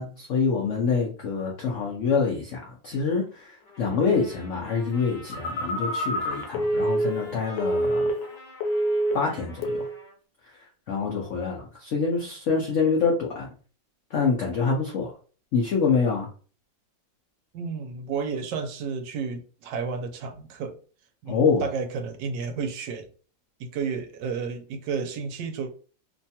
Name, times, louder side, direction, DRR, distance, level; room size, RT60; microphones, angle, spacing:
voice 1, 0.0-8.1 9.1-9.8 10.9-13.5 14.1-15.1 15.5-16.3 21.3-21.6, left 5 dB, 85° left, 0.6 m, -26 dB
Trumpet, 3.6-10.2, left 2 dB, 35° left, 0.6 m, -47 dB
Telephone, 5.3-8.4 8.6-9.3 9.6-9.9, right 1 dB, 70° left, 1.2 m, -26 dB
voice 2, 17.5-20.8 21.2-23.1 23.6-25.7, right 5 dB, 75° right, 1.2 m, -32 dB
3.1 x 2.2 x 2.7 m
omnidirectional pair, 2.0 m